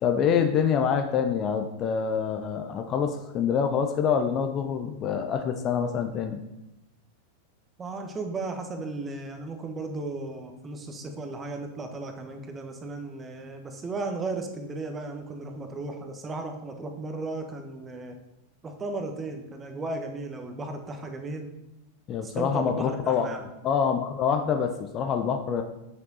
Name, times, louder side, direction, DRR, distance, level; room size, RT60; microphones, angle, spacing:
voice 1, 0.0-6.4 22.1-23.3 23.6-25.6, left 7 dB, 30° left, 6 dB, 0.8 m, -26 dB
voice 2, 7.8-18.2 18.6-21.5 22.2-23.4, right 2 dB, 20° right, 5 dB, 1.3 m, -35 dB
8.7 x 6.9 x 4.1 m, 0.91 s
figure-of-eight pair, 90°, 0 cm